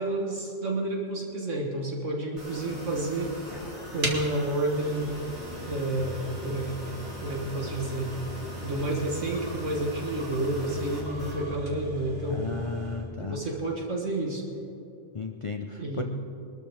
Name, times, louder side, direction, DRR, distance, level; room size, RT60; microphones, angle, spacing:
voice 1, 0.0-3.6 3.9-5.1 5.7-6.7 7.2-8.1 8.6-12.5 13.2-14.4 15.8-16.0, right 1 dB, 65° right, -1 dB, 1.7 m, -30 dB
sound 1, 2.4-11.4, equal, 90° right, 5.0 m, -41 dB
sound 2, 4.0-13.1, equal, 50° right, 2.3 m, -39 dB
voice 2, 12.3-13.4 15.1-16.0, left 4 dB, 35° left, 4 dB, 0.5 m, -34 dB
23.5 x 13.0 x 3.5 m, 2.8 s
omnidirectional pair, 1.4 m